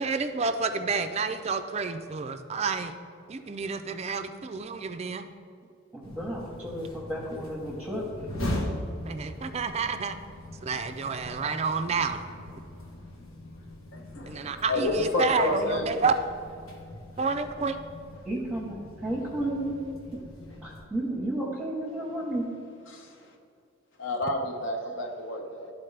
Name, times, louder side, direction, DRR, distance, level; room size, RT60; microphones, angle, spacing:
voice 1, 0.0-2.9 3.3-5.3 9.0-10.2 10.6-12.2 14.3-16.1 17.2-17.8, right 4 dB, 30° right, 8 dB, 0.4 m, -29 dB
voice 2, 5.9-8.3 18.3-19.8 20.6-22.4, right 1 dB, 5° right, -6 dB, 0.9 m, -32 dB
sound 1, 6.0-20.8, left 1 dB, 90° left, 1.3 m, -40 dB
voice 3, 13.9-15.9 22.9-23.3 24.0-25.7, left 1 dB, 60° left, 1 dB, 0.9 m, -30 dB
12.0 x 4.2 x 3.3 m, 2.5 s
head